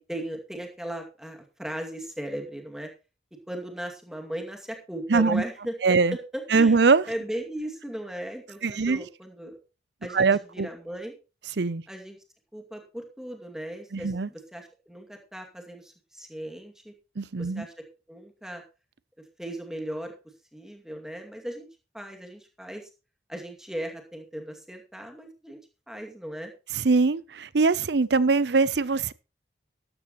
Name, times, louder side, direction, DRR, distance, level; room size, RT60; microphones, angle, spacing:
voice 1, 0.0-2.9 3.3-9.6 10.0-11.2 11.9-12.2 12.5-16.9 17.4-18.6 19.2-20.1 20.5-21.7 21.9-22.9 23.3-25.6 25.9-26.5, right 1 dB, 5° right, 2.3 m, -37 dB
voice 2, 5.1-5.4 5.8-6.2 6.5-7.0 8.6-9.0 10.1-10.7 11.6-11.8 13.9-14.3 17.2-17.7 26.8-29.1, right 4 dB, 65° right, 0.6 m, -22 dB
13.0 x 12.0 x 3.0 m
head